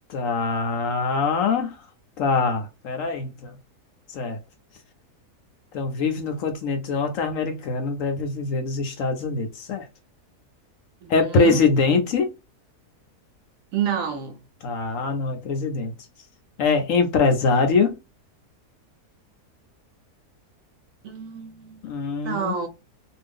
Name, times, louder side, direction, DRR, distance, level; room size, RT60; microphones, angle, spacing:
voice 1, 0.1-1.8 2.2-3.5 4.1-4.4 5.7-9.9 11.1-12.3 14.6-15.9 16.6-17.9 21.8-22.6, left 4 dB, 65° left, 0.9 m, -23 dB
voice 2, 11.0-11.6 13.7-14.4 21.0-21.8 22.2-22.7, right 7 dB, 65° right, 1.0 m, -29 dB
2.6 x 2.4 x 3.4 m
omnidirectional pair, 1.7 m